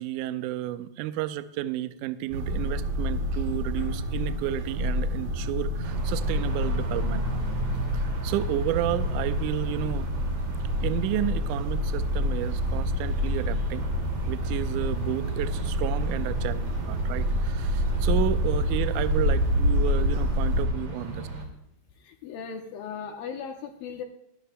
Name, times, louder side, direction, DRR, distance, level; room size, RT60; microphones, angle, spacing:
voice 1, 0.0-7.3 7.9-10.1 10.8-13.9 14.3-21.3, right 13 dB, 85° right, 11 dB, 1.8 m, -32 dB
sound 1, 2.3-20.6, equal, 60° right, 3.9 m, -27 dB
sound 2, 5.8-21.5, right 2 dB, 40° right, 2.8 m, -36 dB
voice 2, 22.0-24.0, left 6 dB, 80° left, 4 dB, 2.5 m, -37 dB
23.0 x 12.5 x 2.2 m, 0.81 s
omnidirectional pair, 4.3 m